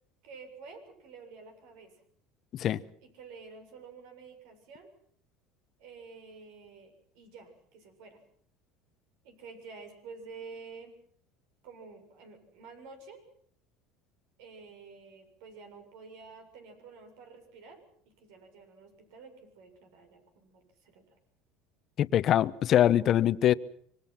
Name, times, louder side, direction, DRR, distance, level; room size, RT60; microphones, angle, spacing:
voice 1, 0.2-2.0 3.0-4.9 5.8-8.2 9.2-11.0 11.6-13.2 14.4-21.2, right 4 dB, 75° right, 7 dB, 7.2 m, -50 dB
voice 2, 22.0-23.5, left 11 dB, 45° left, 15 dB, 1.0 m, -23 dB
26.0 x 24.5 x 6.0 m, 0.62 s
supercardioid pair, 115°, 0 cm